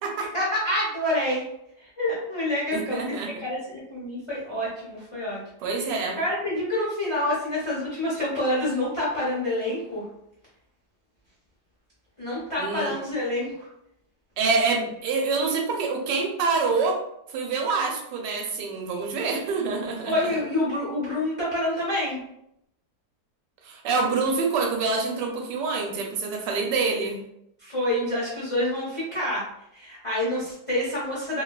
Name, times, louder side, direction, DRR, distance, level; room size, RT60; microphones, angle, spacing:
voice 1, 0.3-1.4 1.8-3.1 3.4-5.4 5.8-5.9 6.2-10.1 12.2-13.7 20.1-22.2 27.6-29.4 29.7-31.4, left 1 dB, 30° left, -9 dB, 0.5 m, -27 dB
voice 2, 2.7-3.3 5.6-6.2 12.6-12.9 14.4-17.0 17.3-20.4 23.6-27.2, right 4 dB, 80° right, 2 dB, 1.2 m, -26 dB
3.0 x 2.2 x 2.2 m, 0.77 s
omnidirectional pair, 1.9 m